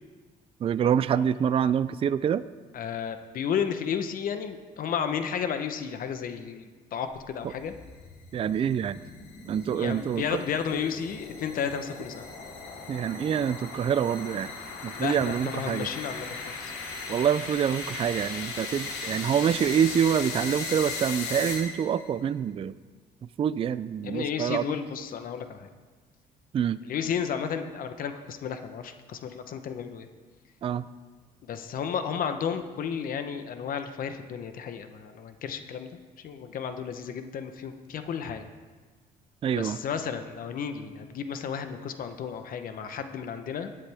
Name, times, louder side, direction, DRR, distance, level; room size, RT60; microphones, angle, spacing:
voice 1, 0.6-2.4 8.3-9.0 9.4-10.4 12.9-14.5 14.8-15.9 17.1-22.7 23.4-24.6 26.5-26.8 30.6-30.8 39.4-39.8, right 8 dB, 35° right, 15 dB, 0.4 m, -26 dB
voice 2, 2.7-7.7 9.5-12.3 14.9-16.7 24.0-25.7 26.8-30.1 31.5-35.9 36.2-38.5 39.6-43.7, left 7 dB, 55° left, 8 dB, 1.0 m, -33 dB
sound 1, 7.2-22.0, left 4 dB, 80° left, 2.7 m, -38 dB
17.0 x 10.0 x 3.5 m, 1.4 s
cardioid pair, 110°, 17 cm